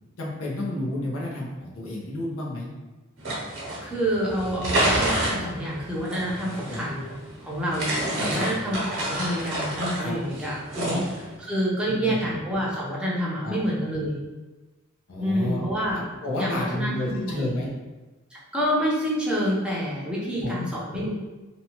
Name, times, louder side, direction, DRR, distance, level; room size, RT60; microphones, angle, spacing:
voice 1, 0.2-2.7 6.7-6.9 8.2-8.5 10.0-10.1 10.9-11.0 11.8-12.2 13.4-13.5 15.1-15.6 16.0-17.7 20.4-20.6, left 1 dB, 75° left, -4 dB, 0.7 m, -31 dB
sound 1, 3.2-11.4, right 1 dB, 60° right, 0.9 m, -29 dB
voice 2, 3.8-7.1 7.4-11.0 11.4-14.2 15.2-16.0 16.4-17.5 18.5-21.1, equal, 5° right, -6 dB, 0.6 m, -27 dB
2.7 x 2.2 x 2.8 m, 1.2 s
head